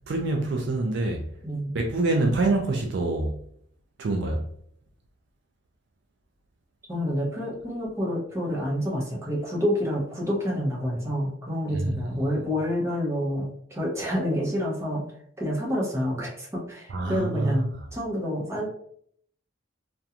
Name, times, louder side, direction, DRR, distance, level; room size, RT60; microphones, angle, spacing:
voice 1, 0.0-1.3 1.7-3.3 4.0-4.4 11.7-12.0 16.9-17.9, right 2 dB, 60° right, 0.3 m, -26 dB
voice 2, 1.4-1.7 6.9-15.0 15.4-18.7, equal, 15° right, 0.7 m, -28 dB
2.4 x 2.2 x 2.8 m
head